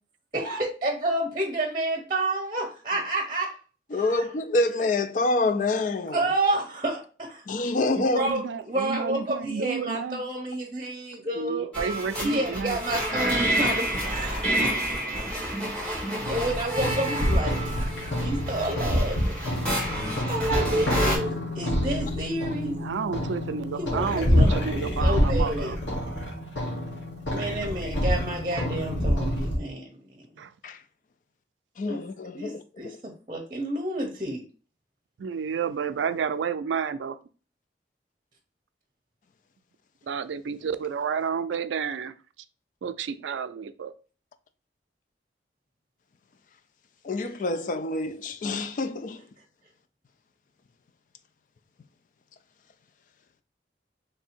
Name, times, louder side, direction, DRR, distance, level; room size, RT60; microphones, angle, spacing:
voice 1, 0.3-3.6 3.9-4.3 6.1-7.4 8.1-11.7 12.2-14.6 16.2-17.6 18.2-19.2 20.3-22.8 23.8-25.8 27.3-30.3 31.9-32.0 32.3-34.4, right 1 dB, 25° right, 0.7 m, -30 dB
voice 2, 3.9-6.2 7.5-8.3 12.2-12.3 30.6-30.8 31.8-33.0 47.0-49.2, left 2 dB, 45° left, 0.3 m, -27 dB
voice 3, 7.9-10.2 11.4-12.8 19.8-19.9 22.6-25.8 30.4-30.5 35.2-37.2 40.1-42.1 42.8-43.9, right 6 dB, 90° right, 0.4 m, -31 dB
sound 1, 11.7-21.2, right 1 dB, 5° left, 1.1 m, -29 dB
sound 2, 16.2-29.6, equal, 90° left, 1.2 m, -27 dB
3.3 x 2.7 x 4.3 m
head